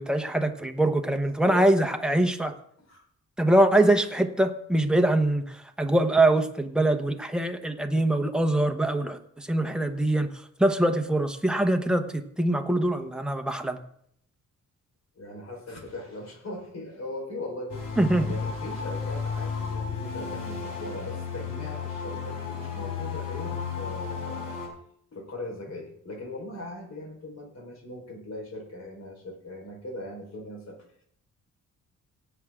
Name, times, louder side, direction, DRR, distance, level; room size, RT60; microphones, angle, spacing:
voice 1, 0.0-2.5 3.4-10.3 10.6-13.8 18.0-18.3, right 1 dB, 5° right, 5 dB, 1.1 m, -23 dB
voice 2, 15.2-17.9 18.3-24.6 25.1-30.8, left 1 dB, 55° left, 0 dB, 4.5 m, -39 dB
sound 1, 17.7-24.7, left 5 dB, 90° left, 4.0 m, -33 dB
18.0 x 8.0 x 3.7 m, 0.69 s
cardioid pair, 115°, 31 cm